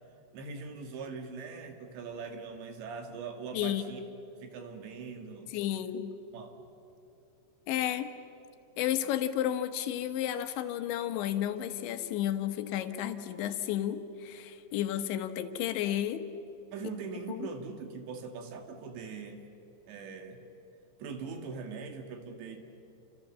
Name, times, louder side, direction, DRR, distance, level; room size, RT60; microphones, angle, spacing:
voice 1, 0.3-4.0 4.4-5.6 6.3-6.6 16.7-19.4 19.9-20.4 21.0-22.6, right 5 dB, 75° right, 5 dB, 4.2 m, -41 dB
voice 2, 3.5-3.9 5.5-6.1 7.7-8.1 8.8-16.2 17.3-17.5, left 11 dB, 80° left, 9 dB, 3.4 m, -32 dB
29.5 x 26.0 x 7.4 m, 2.9 s
omnidirectional pair, 5.3 m